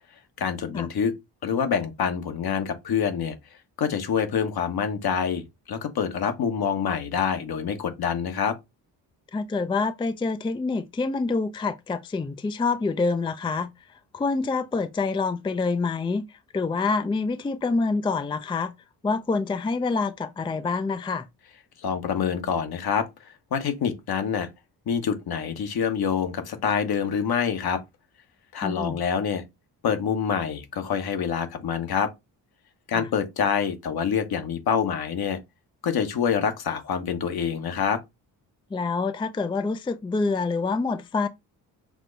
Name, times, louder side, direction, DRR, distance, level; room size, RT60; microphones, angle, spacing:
voice 1, 0.4-1.1 1.4-3.3 3.8-8.6 21.8-24.5 24.9-27.8 28.5-29.4 29.8-32.1 32.9-35.4 35.8-38.0, left 7 dB, 60° left, 1.2 m, -26 dB
voice 2, 9.3-13.7 14.1-16.2 16.5-18.7 19.0-21.3 28.6-29.0 32.9-33.1 38.7-41.3, left 4 dB, 10° left, 0.4 m, -26 dB
6.0 x 2.2 x 3.9 m
supercardioid pair, 60°, 43 cm